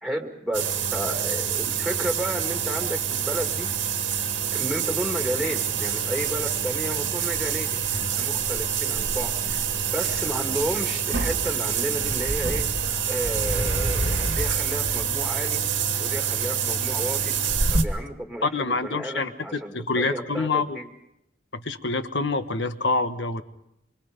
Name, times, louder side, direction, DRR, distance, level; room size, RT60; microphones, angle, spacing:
voice 1, 0.0-3.7 4.5-9.6 9.9-12.7 13.1-15.6 16.0-17.3 17.7-20.9, equal, ahead, 3 dB, 2.2 m, -32 dB
sound 1, 0.5-17.8, right 6 dB, 80° right, 2.0 m, -26 dB
voice 2, 18.4-19.3 19.7-20.8 21.5-23.4, left 3 dB, 60° left, 9 dB, 1.3 m, -26 dB
26.0 x 24.5 x 5.2 m, 0.78 s
head